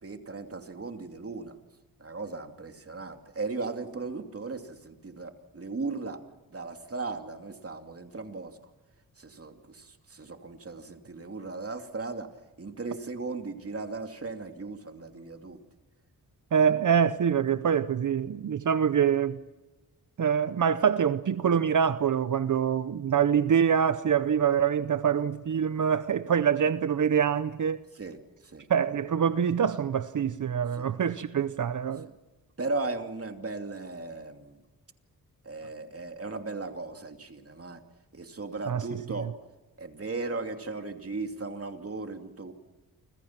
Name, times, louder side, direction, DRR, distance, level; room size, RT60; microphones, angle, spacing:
voice 1, 0.0-1.6 2.0-6.2 6.5-8.6 9.2-12.3 12.6-15.6 25.2-25.3 28.0-28.2 28.4-28.7 30.8-30.9 32.1-32.2 32.6-34.6 35.4-37.8 38.1-39.3 39.8-42.5, right 3 dB, 40° right, 2.8 m, -37 dB
voice 2, 16.5-19.4 20.2-27.8 28.7-32.1 38.7-38.9 39.2-39.3, right 8 dB, 55° right, 0.9 m, -25 dB
29.0 x 26.5 x 6.0 m
cardioid pair, 70°, 35 cm